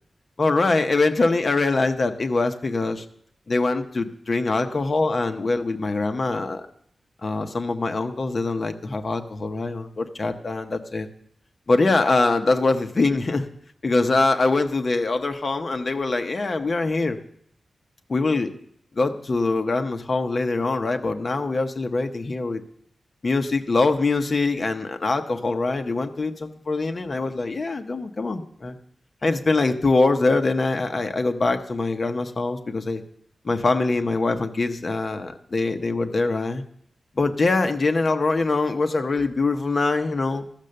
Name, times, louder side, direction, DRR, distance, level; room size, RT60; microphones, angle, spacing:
voice 1, 0.4-3.0 3.5-6.6 7.2-11.1 11.7-13.5 13.8-17.2 18.1-18.5 19.0-22.6 23.2-28.8 29.2-33.0 33.4-36.6 37.2-40.4, left 3 dB, 35° left, 6 dB, 0.8 m, -23 dB
13.5 x 6.7 x 6.5 m, 0.66 s
wide cardioid pair, 170°, 0 cm